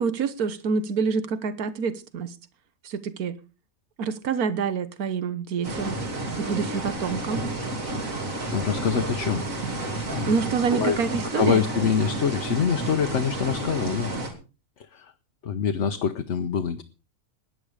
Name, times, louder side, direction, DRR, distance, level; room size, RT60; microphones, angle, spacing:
voice 1, 0.0-2.3 2.8-3.4 4.0-5.9 6.4-7.4 10.2-11.6, right 5 dB, 80° right, 1.6 m, -27 dB
sound 1, 5.6-14.3, right 2 dB, 65° right, 3.4 m, -31 dB
voice 2, 8.5-9.5 10.1-10.3 10.7-14.1 14.8-15.1 15.4-16.8, left 7 dB, 55° left, 1.2 m, -25 dB
17.5 x 10.5 x 4.9 m
omnidirectional pair, 1.5 m